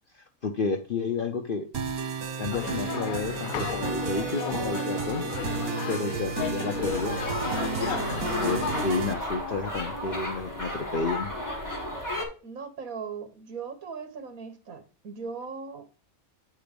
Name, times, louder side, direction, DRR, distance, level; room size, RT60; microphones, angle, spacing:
voice 1, 0.1-1.9 2.4-5.2 5.9-7.2 7.8-11.3, left 4 dB, 50° left, 0.6 m, -31 dB
sound 1, 1.7-9.1, right 5 dB, 90° right, 1.4 m, -32 dB
sound 2, 2.5-8.8, left 9 dB, 75° left, 1.1 m, -34 dB
sound 3, 6.7-12.2, equal, 15° left, 1.7 m, -34 dB
voice 2, 7.7-8.1 12.4-15.9, right 5 dB, 75° right, 1.6 m, -39 dB
8.9 x 3.8 x 5.1 m
omnidirectional pair, 1.5 m